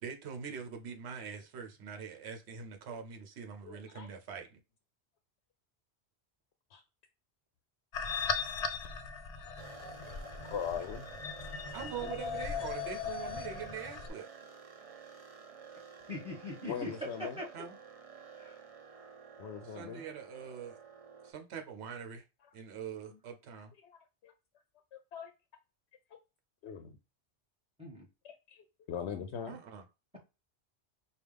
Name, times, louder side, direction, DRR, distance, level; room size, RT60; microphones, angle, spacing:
voice 1, 0.0-4.6 11.7-14.3 17.5-17.8 19.7-20.8 21.2-22.2 22.5-23.7 29.5-29.8, right 7 dB, 75° right, 1.0 m, -43 dB
voice 2, 3.6-4.1 6.7-6.8 9.4-9.5 10.0-10.2 10.5-11.1 16.6-17.4 19.4-20.0 22.4-22.5 23.7-24.3 24.9-25.3 26.6-27.0 28.2-29.6, left 8 dB, 75° left, 0.8 m, -41 dB
sound 1, 7.9-14.1, left 6 dB, 55° left, 0.4 m, -38 dB
sound 2, 9.5-21.3, right 6 dB, 40° right, 0.6 m, -52 dB
voice 3, 11.8-12.1 16.1-16.9 17.4-17.5 18.4-18.6 23.1-23.2 27.8-28.1, left 2 dB, 5° right, 1.5 m, -42 dB
4.8 x 2.4 x 3.4 m
omnidirectional pair, 1.1 m